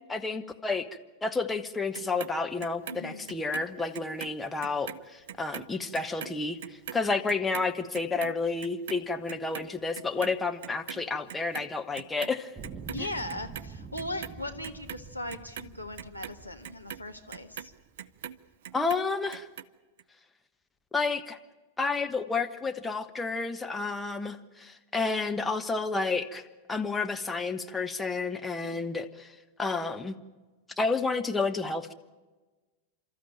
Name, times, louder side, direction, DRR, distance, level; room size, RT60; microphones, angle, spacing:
voice 1, 0.1-0.9 1.2-12.5 13.0-13.1 18.7-19.5 20.9-21.4 21.8-26.4 26.7-29.3 29.6-30.2 30.8-31.9, left 4 dB, 10° left, 6 dB, 1.2 m, -30 dB
Clock, 1.9-4.3 4.6-11.0 11.3-12.3 12.6-13.6 14.0-18.4 18.6-19.6 20.0-20.1, right 9 dB, 55° right, 0.7 m, -42 dB
voice 2, 2.9-3.3 12.9-17.7 28.6-28.9, left 1 dB, 90° left, 4 dB, 1.6 m, -39 dB
sound 1, 12.6-17.8 18.5-18.6, right 5 dB, 20° right, 1.1 m, -46 dB
29.5 x 13.5 x 9.1 m, 1.2 s
figure-of-eight pair, 90°, 0 cm